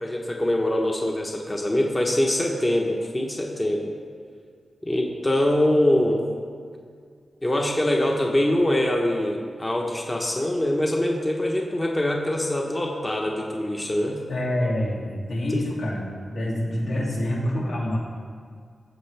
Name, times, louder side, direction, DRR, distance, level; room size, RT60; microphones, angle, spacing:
voice 1, 0.0-3.9 4.8-6.2 7.4-14.2, left 1 dB, 20° left, 0 dB, 0.9 m, -23 dB
voice 2, 14.3-18.0, left 1 dB, 85° left, -5 dB, 2.5 m, -26 dB
17.5 x 7.2 x 3.4 m, 2.1 s
wide cardioid pair, 140°, 0 cm